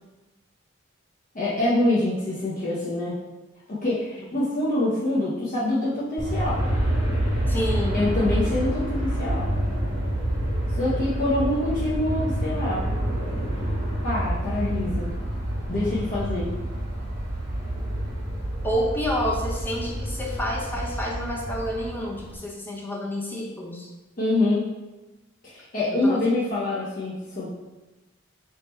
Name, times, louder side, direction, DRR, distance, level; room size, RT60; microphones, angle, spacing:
voice 1, 1.3-3.2 3.7-6.6 7.9-9.5 10.7-12.8 14.0-15.1 15.7-16.5 24.2-24.7 25.4-27.5, left 2 dB, 40° left, -9 dB, 0.9 m, -25 dB
Aircraft, 6.2-22.4, right 1 dB, 40° right, 1.4 m, -28 dB
voice 2, 7.5-8.0 18.6-23.9 25.9-26.2, equal, 10° left, -2 dB, 0.6 m, -29 dB
3.6 x 2.8 x 4.3 m, 1.1 s
head